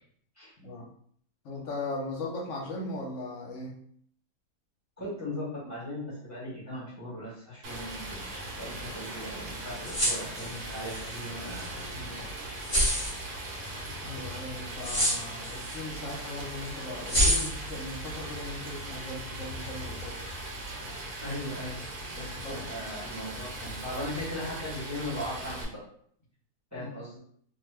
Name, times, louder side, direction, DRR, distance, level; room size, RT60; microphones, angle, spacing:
voice 1, 0.6-0.9 1.4-3.8 13.7-20.2 22.4-22.7 26.8-26.9, left 2 dB, 60° left, -2 dB, 1.0 m, -38 dB
voice 2, 5.0-12.1 12.4-12.5 21.2-21.8 22.1-25.8 26.7-27.2, left 1 dB, 15° right, -7 dB, 0.8 m, -38 dB
Stream, 7.6-25.6, right 1 dB, 75° right, 1.2 m, -39 dB
sound 1, 9.8-11.1 11.5-11.7 12.6-13.2 14.8-15.8 16.1-16.2 17.1-17.7, equal, 20° left, 0.9 m, -27 dB
2.7 x 2.2 x 3.2 m, 0.63 s
omnidirectional pair, 1.7 m